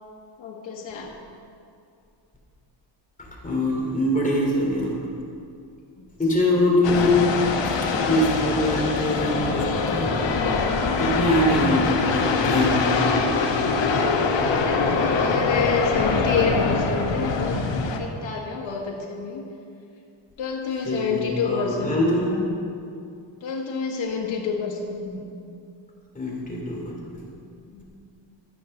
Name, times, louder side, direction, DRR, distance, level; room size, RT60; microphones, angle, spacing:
voice 1, 0.4-1.1 6.0-6.1 14.6-17.6 18.0-19.4 20.4-22.0 23.4-25.2 27.7-27.9, left 5 dB, 90° left, -2 dB, 1.7 m, -28 dB
voice 2, 3.4-4.9 6.2-7.2 7.9-10.1 11.0-13.0 20.8-22.4 26.1-26.9, left 1 dB, 15° left, -3 dB, 2.9 m, -23 dB
sound 1, 6.8-18.0, left 4 dB, 70° left, 1.3 m, -23 dB
13.5 x 7.4 x 6.5 m, 2.5 s
wide cardioid pair, 155°, 45 cm